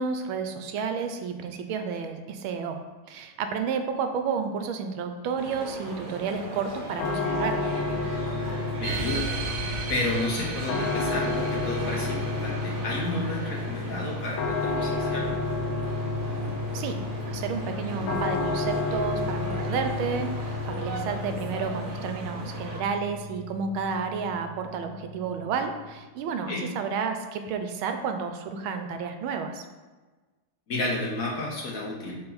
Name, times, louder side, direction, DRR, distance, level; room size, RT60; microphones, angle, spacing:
voice 1, 0.0-2.8 3.1-7.7 16.7-29.6, right 5 dB, 90° right, 7 dB, 1.5 m, -31 dB
sound 1, 5.4-22.8, right 2 dB, 40° right, 0.7 m, -37 dB
sound 2, 7.0-25.9, left 3 dB, 80° left, 1.6 m, -31 dB
voice 2, 8.8-9.2 9.9-15.3 26.5-26.6 30.7-32.1, left 2 dB, 55° left, -2 dB, 1.1 m, -31 dB
sound 3, 8.8-13.8, right 5 dB, 65° right, 1.2 m, -37 dB
6.8 x 4.0 x 4.0 m, 1.3 s
omnidirectional pair, 2.2 m